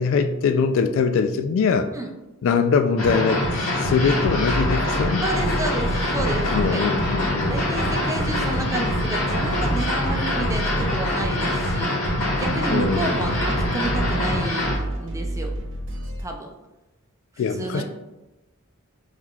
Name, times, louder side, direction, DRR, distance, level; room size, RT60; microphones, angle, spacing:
voice 1, 0.0-1.9 2.4-5.2 6.5-7.6 12.7-13.1 17.4-17.8, left 5 dB, 65° left, 0.3 m, -22 dB
sound 1, 3.0-14.8, left 1 dB, 85° left, 1.2 m, -24 dB
sound 2, 4.0-16.2, equal, 60° right, 1.0 m, -31 dB
sound 3, 5.2-10.8, left 1 dB, 35° left, 1.3 m, -41 dB
voice 2, 5.2-6.8 7.5-11.9 12.4-15.6 16.2-16.5 17.4-17.8, right 2 dB, 15° right, 0.4 m, -30 dB
5.6 x 3.1 x 2.3 m
head